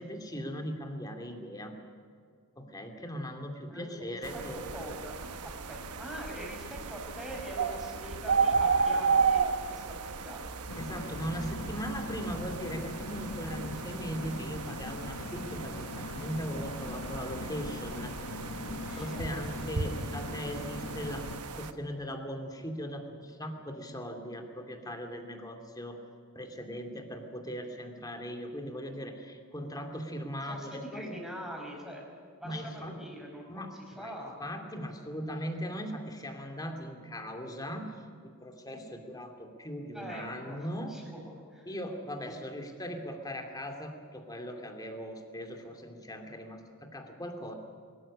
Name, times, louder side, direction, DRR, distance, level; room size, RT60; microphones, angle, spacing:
voice 1, 0.0-1.8 2.6-4.7 10.8-21.3 21.6-26.0 26.3-31.2 32.4-33.0 33.5-37.9 38.2-41.0 41.7-47.5, equal, 15° left, 4 dB, 2.4 m, -39 dB
voice 2, 3.7-5.2 5.4-10.5 18.8-19.3 27.3-27.4 30.4-32.0 32.4-34.4 39.9-41.7, equal, ahead, -1 dB, 5.3 m, -44 dB
sound 1, 4.2-21.7, right 5 dB, 80° right, 1.1 m, -34 dB
sound 2, 10.7-21.4, left 3 dB, 80° left, 1.1 m, -42 dB
23.0 x 13.5 x 9.8 m, 2.1 s
head